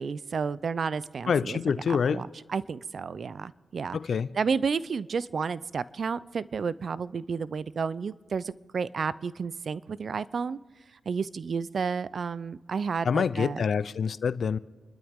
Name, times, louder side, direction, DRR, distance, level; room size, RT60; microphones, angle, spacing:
voice 1, 0.0-1.6 1.9-4.0 4.3-10.6 11.1-13.6, right 5 dB, 55° right, 0.5 m, -31 dB
voice 2, 1.3-2.2 3.9-4.3 13.0-14.6, left 6 dB, 65° left, 0.6 m, -26 dB
29.0 x 12.5 x 3.7 m
cardioid pair, 60°, 0 cm